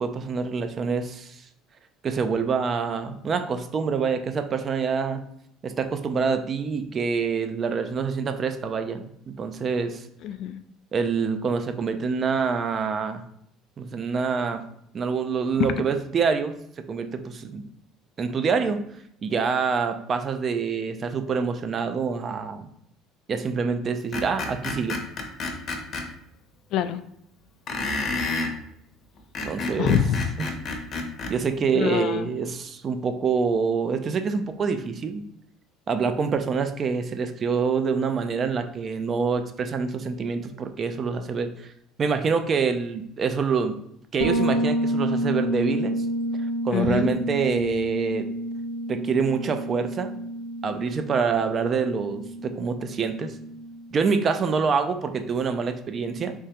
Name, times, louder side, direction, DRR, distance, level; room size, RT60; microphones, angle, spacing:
voice 1, 0.0-1.4 2.0-5.2 5.6-10.1 10.9-13.2 13.8-14.6 14.9-17.7 18.2-18.8 19.2-22.7 23.3-25.0 29.4-30.0 30.4-30.6 31.3-35.3 35.9-41.7 42.0-43.8 44.1-46.0 46.6-48.3 48.9-50.1 50.6-53.4 53.9-56.3, right 5 dB, 40° right, 8 dB, 0.4 m, -26 dB
voice 2, 10.2-10.6 15.6-15.7 26.7-27.0 29.8-30.3 31.7-32.3 46.7-47.1, left 9 dB, 60° left, 12 dB, 0.3 m, -25 dB
Screech, 24.1-26.1 27.7-28.5 29.2-31.4, left 3 dB, 45° left, 0.8 m, -30 dB
Bass guitar, 44.2-53.9, right 1 dB, 85° left, 0.8 m, -29 dB
3.5 x 3.2 x 2.9 m, 0.73 s
supercardioid pair, 95°, 0 cm